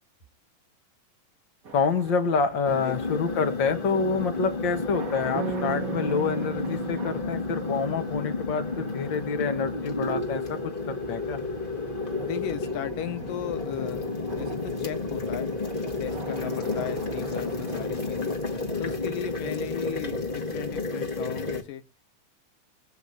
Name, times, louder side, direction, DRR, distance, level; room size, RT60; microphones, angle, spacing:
sound 1, 1.6-20.7, right 4 dB, 45° right, 1.1 m, -44 dB
voice 1, 1.7-11.4, left 5 dB, 50° left, 6 dB, 1.4 m, -27 dB
sound 2, 2.6-21.6, left 3 dB, 25° left, 1.0 m, -31 dB
sound 3, 5.4-8.8, right 8 dB, 70° right, 1.4 m, -37 dB
voice 2, 12.1-15.5 16.0-18.4 18.8-21.8, left 11 dB, 75° left, 9 dB, 2.8 m, -36 dB
22.0 x 8.0 x 2.7 m, 0.29 s
omnidirectional pair, 4.0 m